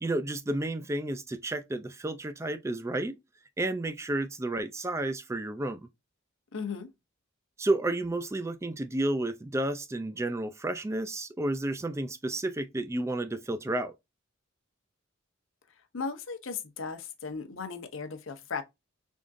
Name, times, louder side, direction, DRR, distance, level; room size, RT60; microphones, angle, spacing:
voice 1, 0.0-3.2 3.6-5.8 7.6-13.9, right 2 dB, 15° right, 0.3 m, -31 dB
voice 2, 6.5-6.9 15.7-18.6, left 5 dB, 70° left, 0.7 m, -37 dB
3.6 x 3.5 x 2.5 m
head